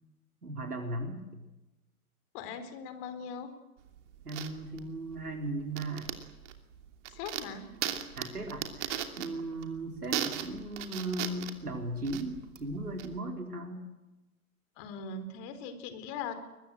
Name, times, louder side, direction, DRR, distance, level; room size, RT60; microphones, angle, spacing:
voice 1, 0.4-1.4 4.2-6.1 8.2-13.9, right 1 dB, 90° right, 2 dB, 4.4 m, -37 dB
voice 2, 2.3-3.5 7.1-7.7 14.8-16.3, left 5 dB, 40° left, 10 dB, 4.1 m, -40 dB
sound 1, 3.8-13.2, right 11 dB, 50° right, 2.9 m, -38 dB
23.0 x 21.5 x 9.1 m, 1.0 s
figure-of-eight pair, 110°, 44 cm